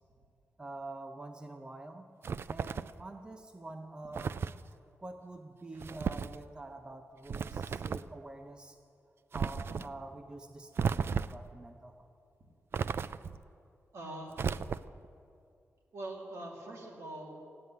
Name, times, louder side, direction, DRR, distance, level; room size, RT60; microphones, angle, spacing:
voice 1, 0.6-2.1 2.5-4.5 5.0-8.8 9.3-12.1, right 2 dB, 15° right, 6 dB, 0.6 m, -46 dB
sound 1, 2.2-3.0 4.1-4.6 5.8-6.4 7.3-8.1 9.3-9.9 10.8-11.5 12.7-13.4 14.3-15.1, right 6 dB, 50° right, 0.3 m, -34 dB
voice 2, 13.9-14.4 15.9-17.4, right 1 dB, 70° right, -1 dB, 2.9 m, -43 dB
15.0 x 9.7 x 9.2 m, 2.5 s
wide cardioid pair, 155°, 5 cm